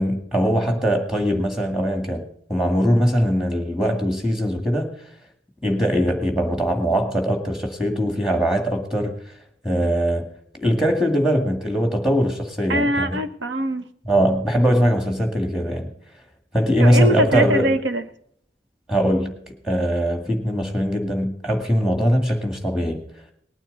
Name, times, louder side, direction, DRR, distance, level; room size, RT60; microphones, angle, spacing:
voice 1, 0.0-2.2 2.5-4.9 5.6-9.1 9.6-10.3 10.6-13.2 14.1-15.9 16.5-17.7 18.9-19.3 19.6-23.0, equal, 5° right, 4 dB, 2.1 m, -21 dB
voice 2, 12.7-13.8 16.8-18.0, right 1 dB, 70° right, 10 dB, 1.0 m, -22 dB
19.5 x 9.1 x 4.0 m, 0.66 s
head